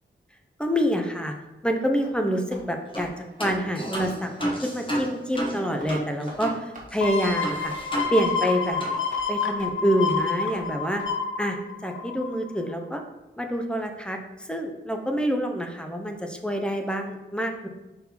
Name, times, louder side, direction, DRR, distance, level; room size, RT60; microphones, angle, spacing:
voice 1, 0.6-1.3 1.6-3.1 3.4-7.7 8.1-8.8 9.3-11.0 11.4-13.0 13.4-17.7, equal, 5° left, 4 dB, 0.8 m, -27 dB
sound 1, 2.0-2.2 2.5-2.7 2.9-3.1 3.4-3.6 3.9-4.1 4.4-4.5 4.9-5.0 5.3-5.5 5.8-5.9 6.3-6.4 6.7-6.9 7.2-7.4 7.7-7.8 8.1-8.3 8.6-8.7 9.1-9.2 9.6-9.7 10.1-10.2 10.5-10.7 11.0-11.1, right 2 dB, 40° right, 1.7 m, -43 dB
sound 2, 2.9-3.1 3.4-6.6 6.9-7.0 7.4-8.5 8.8-9.0, right 1 dB, 25° left, 1.4 m, -32 dB
sound 3, 7.0-12.5 12.9-13.0, left 5 dB, 90° left, 0.7 m, -29 dB
5.5 x 4.6 x 4.2 m, 1.0 s
wide cardioid pair, 85°, 20 cm